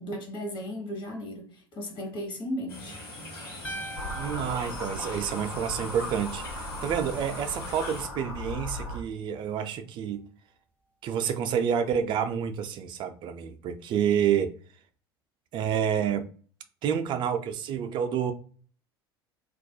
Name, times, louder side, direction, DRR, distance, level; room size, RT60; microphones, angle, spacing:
voice 1, 0.0-3.0, equal, 40° left, 1.0 m, -35 dB
sound 1, 2.7-8.1, left 1 dB, 65° left, 1.3 m, -42 dB
sound 2, 3.6-5.9, right 1 dB, 10° left, 0.6 m, -41 dB
sound 3, 3.9-9.0, left 1 dB, 80° left, 0.6 m, -37 dB
voice 2, 4.2-10.2 11.0-14.6 15.5-16.2 16.8-18.3, right 8 dB, 40° right, 0.4 m, -29 dB
2.3 x 2.0 x 2.6 m
figure-of-eight pair, 70°, 13 cm